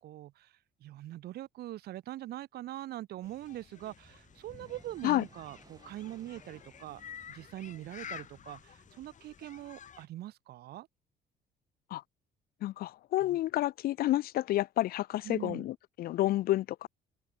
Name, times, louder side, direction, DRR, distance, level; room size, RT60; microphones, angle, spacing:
voice 1, 0.0-7.0 7.3-10.9 13.2-13.4 15.2-15.7, right 14 dB, 70° right, 2.0 m, -43 dB
sound 1, 3.2-10.1, left 8 dB, 45° left, 5.8 m, -50 dB
sound 2, 3.6-9.6, right 4 dB, 20° right, 5.2 m, -61 dB
voice 2, 12.6-16.9, left 15 dB, 65° left, 0.5 m, -30 dB
open air
cardioid pair, 110°, 17 cm